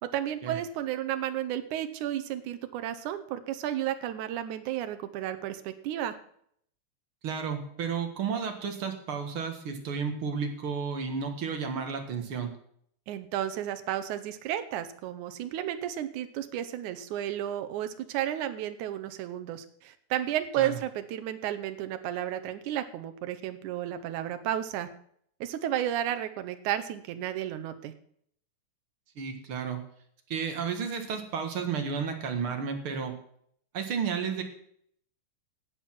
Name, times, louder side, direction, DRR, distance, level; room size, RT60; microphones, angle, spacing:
voice 1, 0.0-6.2 13.1-24.9 25.4-27.9, right 11 dB, 85° right, 10 dB, 2.3 m, -32 dB
voice 2, 7.2-12.5 20.6-20.7 29.2-29.8 30.3-33.1 33.7-34.4, right 6 dB, 50° right, 5 dB, 2.2 m, -32 dB
12.0 x 8.3 x 6.1 m, 0.65 s
omnidirectional pair, 3.5 m